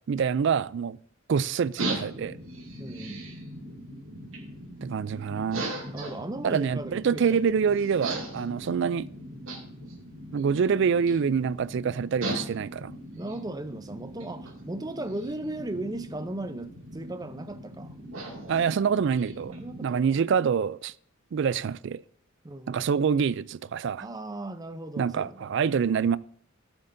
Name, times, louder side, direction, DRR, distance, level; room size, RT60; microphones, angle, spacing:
voice 1, 0.1-1.0 1.3-2.4 4.8-5.7 6.4-9.1 10.3-12.9 18.5-19.6 19.8-20.9 21.3-22.0 22.7-24.1 25.0-26.2, right 6 dB, 60° right, 0.3 m, -26 dB
sound 1, 1.8-19.9, right 1 dB, 75° right, 2.3 m, -39 dB
voice 2, 2.8-3.2 5.9-7.2 13.1-18.0 19.5-20.2 22.4-22.9 24.0-25.5, right 2 dB, 20° right, 0.6 m, -37 dB
14.5 x 8.1 x 2.6 m
head